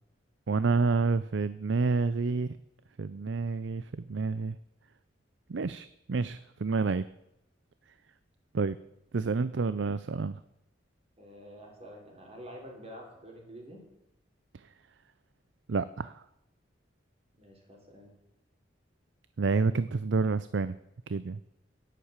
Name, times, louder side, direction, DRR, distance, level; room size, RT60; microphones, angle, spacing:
voice 1, 0.5-2.5 3.0-4.6 5.5-7.0 8.5-8.8 9.1-10.4 14.5-14.6 15.7-16.2 19.4-20.8 21.1-21.4, right 4 dB, 70° right, 15 dB, 0.5 m, -29 dB
voice 2, 11.2-13.8 17.3-18.1, equal, 35° right, 0 dB, 4.0 m, -48 dB
11.5 x 10.0 x 8.9 m, 0.86 s
head